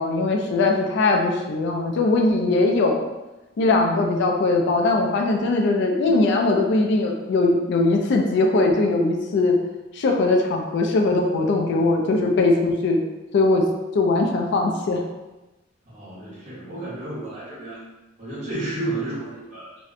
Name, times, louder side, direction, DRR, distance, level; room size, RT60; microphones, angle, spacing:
voice 1, 0.0-3.1 3.6-9.6 9.9-13.0 13.3-13.7 13.9-15.0, left 2 dB, 65° left, 2 dB, 0.3 m, -20 dB
voice 2, 15.8-17.8 18.2-19.7, right 2 dB, 40° right, -10 dB, 1.2 m, -32 dB
2.5 x 2.1 x 2.5 m, 1.1 s
head